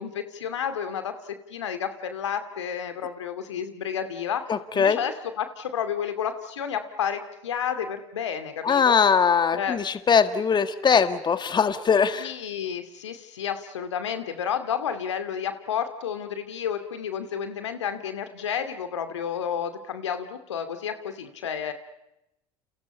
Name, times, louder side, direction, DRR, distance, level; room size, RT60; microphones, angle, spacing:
voice 1, 0.0-8.9 9.5-9.8 12.2-21.7, left 8 dB, 80° left, 9 dB, 2.4 m, -31 dB
voice 2, 4.5-5.0 8.6-12.3, left 6 dB, 30° left, 10 dB, 1.7 m, -21 dB
30.0 x 29.5 x 5.6 m, 0.86 s
hypercardioid pair, 70°, 15 cm